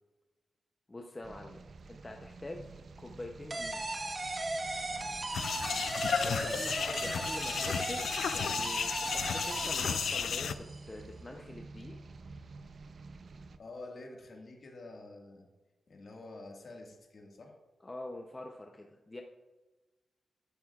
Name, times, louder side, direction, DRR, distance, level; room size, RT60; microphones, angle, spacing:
voice 1, 0.9-1.6 1.9-2.7 3.0-3.8 6.2-12.0 17.8-19.2, left 2 dB, 20° left, 2 dB, 0.7 m, -45 dB
sound 1, 1.2-13.6, right 4 dB, 55° right, 0.5 m, -50 dB
sound 2, 3.5-10.9, right 2 dB, 30° right, 0.9 m, -37 dB
sound 3, 5.3-10.5, left 7 dB, 85° left, 0.4 m, -33 dB
voice 2, 6.3-6.7 13.6-15.5 15.9-17.6, left 2 dB, 50° left, 1 dB, 1.8 m, -48 dB
13.5 x 11.0 x 2.4 m, 1.2 s
wide cardioid pair, 145°, 0 cm